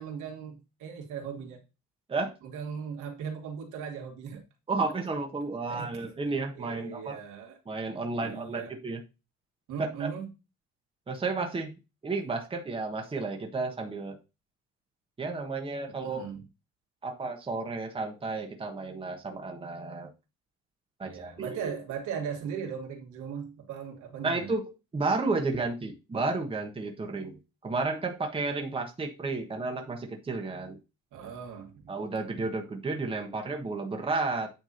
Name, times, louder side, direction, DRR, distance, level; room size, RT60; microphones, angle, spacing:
voice 1, 0.0-1.6 2.4-4.4 5.7-5.9 6.5-7.6 8.2-8.7 9.7-10.3 15.9-16.4 21.0-24.5 31.1-31.9, right 7 dB, 75° right, 1 dB, 2.7 m, -38 dB
voice 2, 4.7-7.2 7.7-9.0 9.8-10.1 11.1-11.7 12.0-14.2 15.2-16.2 17.0-20.1 21.0-21.7 24.2-30.8 31.9-34.5, right 3 dB, 15° right, 3 dB, 1.4 m, -32 dB
9.4 x 3.6 x 5.8 m, 0.28 s
cardioid pair, 145°, 31 cm